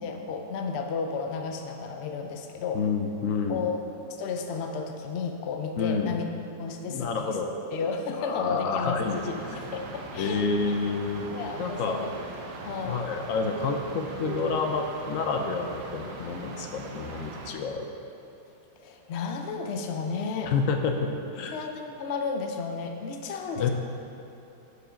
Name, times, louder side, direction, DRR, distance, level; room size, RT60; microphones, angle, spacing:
voice 1, 0.0-2.8 3.5-3.8 4.2-6.2 6.6-7.4 7.7-10.8 11.3-12.1 12.6-13.0 18.8-20.5 21.5-23.7, left 5 dB, 90° left, 3 dB, 0.5 m, -33 dB
voice 2, 2.7-3.7 5.8-6.2 6.9-7.6 8.1-9.2 10.1-11.3 11.6-12.1 12.8-17.9 20.5-21.6 23.6-23.7, left 4 dB, 65° left, 4 dB, 0.8 m, -29 dB
sound 1, 9.0-17.5, right 3 dB, 80° right, 1.5 m, -40 dB
11.5 x 4.9 x 5.1 m, 2.9 s
omnidirectional pair, 2.0 m